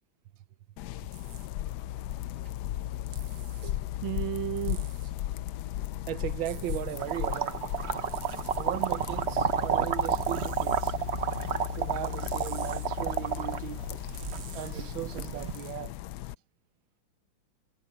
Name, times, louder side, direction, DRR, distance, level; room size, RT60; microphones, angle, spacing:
sound 1, 0.8-16.4, left 13 dB, 70° left, 1.0 m, -36 dB
sound 2, 1.1-1.5 3.1-3.7 4.6-5.1 6.5-7.1 8.1-8.7 10.1-10.9 12.0-12.9 14.0-14.7 15.5-15.7, right 10 dB, 65° right, 1.3 m, -49 dB
voice 1, 3.3-4.9 6.1-7.6 8.6-10.9 11.7-13.8 14.5-15.9, right 14 dB, 85° right, 1.4 m, -37 dB
sound 3, 7.0-15.5, right 7 dB, 45° right, 0.9 m, -31 dB
omnidirectional pair, 2.1 m